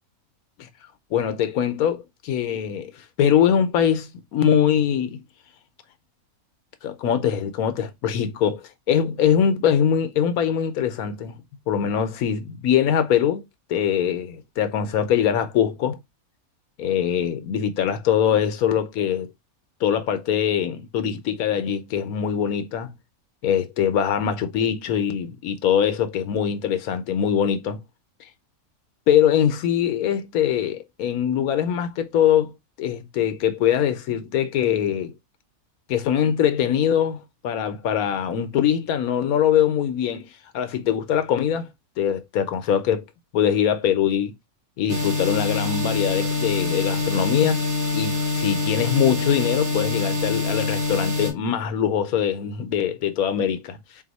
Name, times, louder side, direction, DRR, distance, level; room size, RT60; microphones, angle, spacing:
voice 1, 1.1-2.9 3.2-5.2 6.8-11.4 11.7-13.4 13.7-16.0 16.8-19.3 19.8-22.9 23.4-27.8 29.1-32.5 32.8-35.1 35.9-40.3 40.5-41.7 42.0-43.0 43.3-44.3 44.8-47.6 47.9-53.8, left 9 dB, 80° left, 1.2 m, -22 dB
sound 1, 44.9-51.3, left 3 dB, 60° right, 1.9 m, -25 dB
4.1 x 2.6 x 4.0 m
omnidirectional pair, 1.5 m